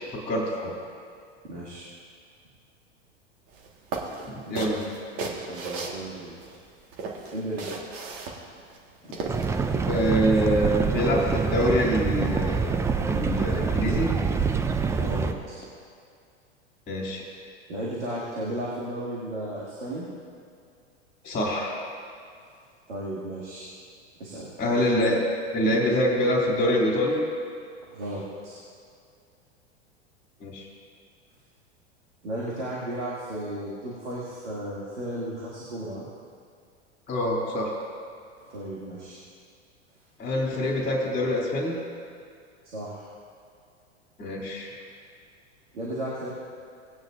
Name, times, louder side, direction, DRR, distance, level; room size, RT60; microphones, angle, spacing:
voice 1, 0.1-0.8 4.3-4.8 9.9-14.1 16.9-17.3 21.2-21.7 24.6-25.2 25.5-27.2 30.4-30.7 37.1-37.7 40.2-41.8 44.2-44.7, equal, 20° left, -2 dB, 2.7 m, -25 dB
voice 2, 1.4-1.8 4.5-4.8 5.1-6.4 7.3-7.7 9.0-9.4 15.0-15.6 17.7-20.1 22.9-23.7 24.2-24.6 27.9-28.6 32.2-36.1 38.5-39.2 42.7-43.1 45.7-46.3, right 1 dB, 85° right, -6 dB, 2.3 m, -34 dB
sound 1, 3.5-3.7 3.9-6.6 6.9-9.5, right 4 dB, 40° right, 1.7 m, -35 dB
sound 2, 9.3-15.3, right 5 dB, 10° right, 0.4 m, -26 dB
18.5 x 9.5 x 2.6 m, 2.3 s
hypercardioid pair, 100°, 35 cm